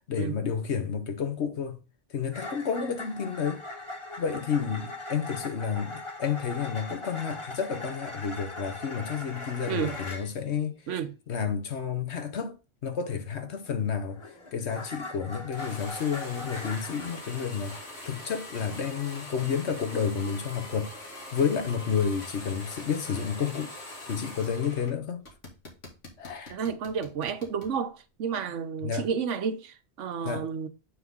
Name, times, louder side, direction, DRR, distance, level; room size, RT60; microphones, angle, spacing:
voice 1, 0.1-1.8 2.1-3.6 4.2-10.8 11.3-12.6 12.8-14.2 14.5-21.0 21.3-23.8 24.1-25.2 26.2-26.6 28.8-29.1 30.2-30.5, left 6 dB, 65° left, 1.3 m, -30 dB
sound 1, 2.3-10.3 13.7-17.5, left 2 dB, 25° left, 1.4 m, -40 dB
sound 2, 15.5-24.9 25.2-27.7, left 2 dB, 90° left, 2.5 m, -43 dB
voice 2, 26.5-30.7, right 7 dB, 90° right, 1.1 m, -31 dB
8.7 x 4.0 x 3.6 m
omnidirectional pair, 1.2 m